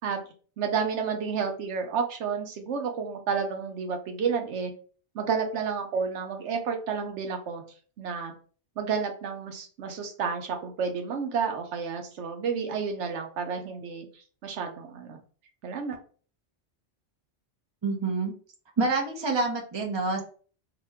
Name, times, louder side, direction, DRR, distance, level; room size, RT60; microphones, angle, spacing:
voice 1, 0.6-4.7 5.1-7.6 8.0-8.3 8.8-15.2 15.6-16.0, right 6 dB, 85° right, 4 dB, 0.9 m, -31 dB
voice 2, 17.8-18.3 18.8-20.2, right 3 dB, 30° right, 0 dB, 0.6 m, -27 dB
2.8 x 2.1 x 3.4 m, 0.41 s
omnidirectional pair, 1.2 m